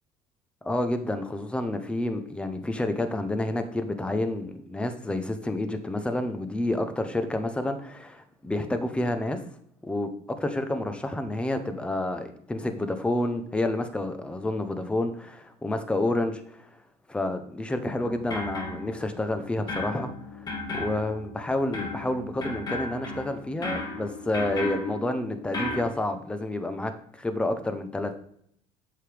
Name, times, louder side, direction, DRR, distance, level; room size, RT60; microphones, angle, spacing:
voice 1, 0.6-9.4 9.8-10.1 10.4-16.6 17.1-20.1 20.7-28.2, left 1 dB, 5° left, 8 dB, 0.8 m, -29 dB
sound 1, 18.0-19.3 19.7-25.8, left 2 dB, 30° left, 2.4 m, -35 dB
8.2 x 7.7 x 3.4 m, 0.67 s
cardioid pair, 135°, 14 cm